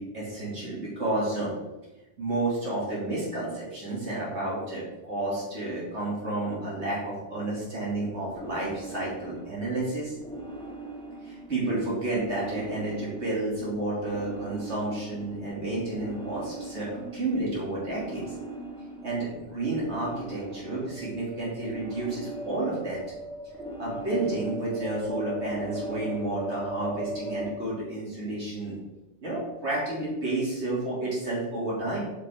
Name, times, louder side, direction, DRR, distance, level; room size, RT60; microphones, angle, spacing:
voice 1, 0.0-1.7 2.2-10.1 11.2-18.2 19.0-23.0 23.8-28.8 29.2-32.0, right 2 dB, 85° right, -6 dB, 3.2 m, -31 dB
sound 1, 7.8-27.5, right 1 dB, 5° left, 1.0 m, -39 dB
7.4 x 6.4 x 3.7 m, 1.0 s
omnidirectional pair, 1.1 m